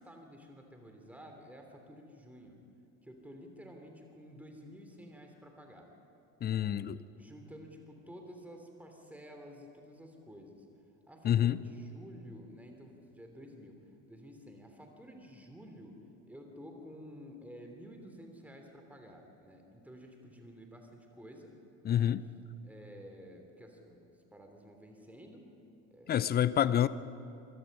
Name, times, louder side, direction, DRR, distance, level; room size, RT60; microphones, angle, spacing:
voice 1, 0.0-2.6 3.0-5.9 6.4-6.7 7.1-10.7 11.1-13.8 14.1-16.0 16.3-21.5 21.9-22.1 22.6-25.4 25.9-26.8, equal, 5° right, 3.0 m, -51 dB
voice 2, 6.4-7.0 11.2-11.6 21.8-22.2 26.1-26.9, left 10 dB, 20° left, 0.5 m, -27 dB
26.5 x 18.0 x 5.5 m
figure-of-eight pair, 65°, 46 cm